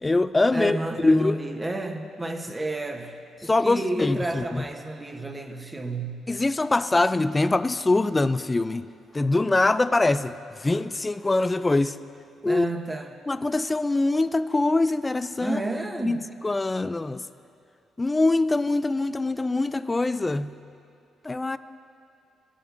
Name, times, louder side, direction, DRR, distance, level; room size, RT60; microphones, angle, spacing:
voice 1, 0.0-1.4 3.4-4.6 6.3-8.9 9.1-10.4 10.6-12.0 12.4-12.7 13.3-15.6 16.0-16.2 16.4-17.2 18.0-20.5 21.2-21.6, left 2 dB, 20° left, 14 dB, 0.3 m, -23 dB
voice 2, 0.5-6.2 12.4-13.2 15.4-16.3, right 1 dB, 15° right, 4 dB, 0.8 m, -31 dB
18.5 x 11.0 x 2.5 m, 2.5 s
cardioid pair, 110°, 0 cm